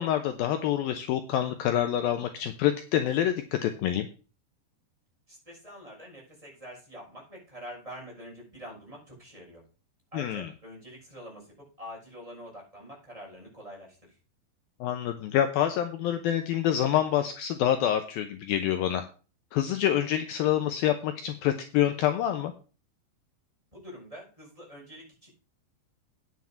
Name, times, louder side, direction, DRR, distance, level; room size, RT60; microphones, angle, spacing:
voice 1, 0.0-4.1 10.1-10.5 14.8-19.0 19.5-22.5, left 11 dB, 80° left, 8 dB, 2.2 m, -27 dB
voice 2, 5.3-9.6 10.1-14.2 23.7-25.3, equal, 5° right, -4 dB, 6.4 m, -46 dB
9.5 x 7.8 x 5.8 m, 0.35 s
omnidirectional pair, 5.2 m